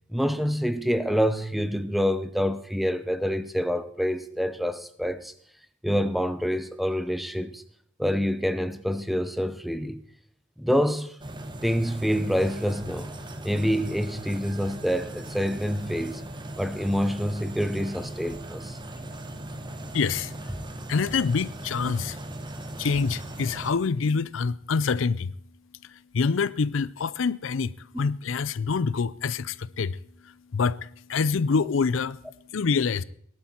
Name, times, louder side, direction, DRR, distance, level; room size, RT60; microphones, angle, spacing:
voice 1, 0.1-5.3 5.8-7.6 8.0-10.0 10.6-11.1 11.6-13.1 13.4-16.2 16.6-18.8, equal, ahead, 0.7 m, -27 dB
sound 1, 11.2-23.7, right 1 dB, 25° right, 1.2 m, -38 dB
voice 2, 19.9-20.3 20.9-22.2 22.8-25.3 26.1-27.7 28.0-30.0 30.5-32.2 32.5-33.0, left 5 dB, 75° left, 0.5 m, -26 dB
18.0 x 12.0 x 4.4 m
head